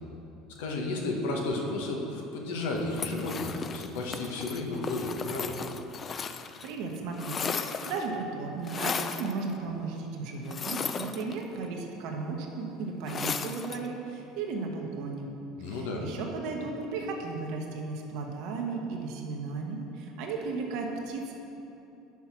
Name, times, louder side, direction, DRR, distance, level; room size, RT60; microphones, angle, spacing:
voice 1, 0.6-5.6 15.6-16.1, left 2 dB, 80° left, 1 dB, 1.0 m, -33 dB
sound 1, 2.9-6.7 7.0-8.1 8.7-9.3 10.5-11.7 13.1-13.9, left 6 dB, 35° left, 0.3 m, -35 dB
voice 2, 6.6-15.3 15.6-21.4, right 4 dB, 70° right, 1 dB, 0.9 m, -35 dB
5.9 x 4.6 x 5.9 m, 2.8 s
supercardioid pair, 95°, 0 cm